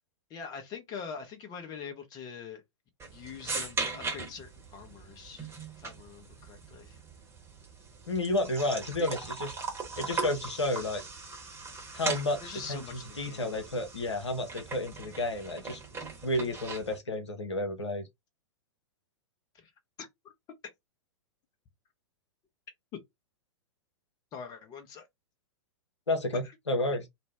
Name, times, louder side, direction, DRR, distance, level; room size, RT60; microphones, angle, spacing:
voice 1, 0.3-2.6 3.1-5.5 5.8-7.0 9.0-9.1 12.4-13.5 15.5-15.6 19.5-19.7 20.0-20.1 22.9-23.0 24.3-25.1, left 6 dB, 25° left, 0.8 m, -43 dB
sound 1, 3.0-17.0, right 4 dB, 15° right, 1.0 m, -39 dB
voice 2, 8.1-9.5 10.0-11.0 11.9-12.4 12.7-15.8 16.2-18.0 26.1-27.0, left 1 dB, 80° left, 0.7 m, -31 dB
2.6 x 2.0 x 3.2 m
figure-of-eight pair, 100°, 15 cm